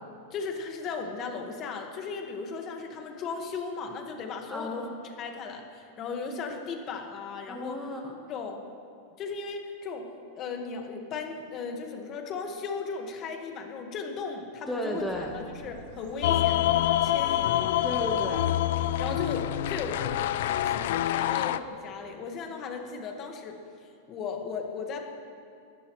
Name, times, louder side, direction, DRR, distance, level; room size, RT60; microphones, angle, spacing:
voice 1, 0.3-4.9 5.2-7.8 8.3-8.7 9.2-10.1 10.4-15.0 15.3-17.8 19.0-20.0 20.7-23.6 24.1-25.1, left 5 dB, 35° left, 3 dB, 1.7 m, -36 dB
voice 2, 4.5-4.9 7.5-8.2 14.7-15.4 17.8-18.5, left 1 dB, ahead, -2 dB, 1.3 m, -33 dB
sound 1, 15.0-20.9, right 2 dB, 70° right, 2.8 m, -47 dB
sound 2, 16.2-21.6, left 13 dB, 70° left, 0.5 m, -26 dB
20.0 x 13.5 x 3.2 m, 2.5 s
supercardioid pair, 145°, 0 cm